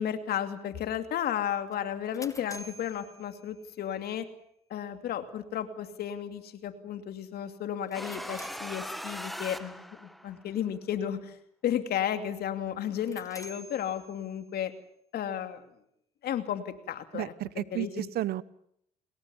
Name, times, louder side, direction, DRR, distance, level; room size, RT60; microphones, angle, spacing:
voice 1, 0.0-4.3 4.7-11.4 11.6-14.7 15.1-15.7 16.2-18.1, left 10 dB, 70° left, 9 dB, 2.7 m, -33 dB
sound 1, 1.7-4.0 7.7-9.4 12.8-14.6, equal, 20° left, 2.4 m, -50 dB
sound 2, 7.9-10.5, equal, ahead, 1.6 m, -40 dB
voice 2, 17.1-18.4, right 14 dB, 70° right, 19 dB, 1.0 m, -32 dB
30.0 x 21.0 x 7.2 m, 0.71 s
supercardioid pair, 60°, 17 cm